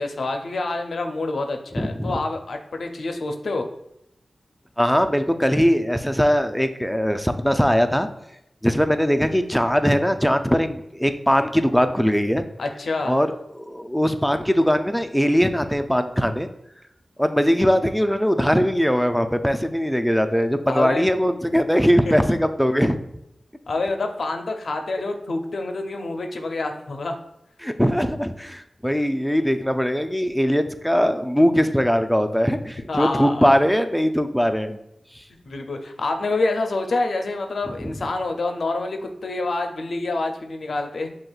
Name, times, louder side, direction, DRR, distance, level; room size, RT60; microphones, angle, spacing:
voice 1, 0.0-3.6 12.6-13.2 20.7-21.1 22.0-22.2 23.7-27.2 32.9-33.5 35.4-41.1, left 2 dB, 75° left, 4 dB, 0.5 m, -27 dB
voice 2, 1.8-2.2 4.8-8.1 8.6-12.4 13.0-13.3 13.5-16.5 17.2-23.0 27.6-34.8, equal, ahead, 8 dB, 0.4 m, -20 dB
6.1 x 2.8 x 2.3 m, 0.82 s
cardioid pair, 45°, 0 cm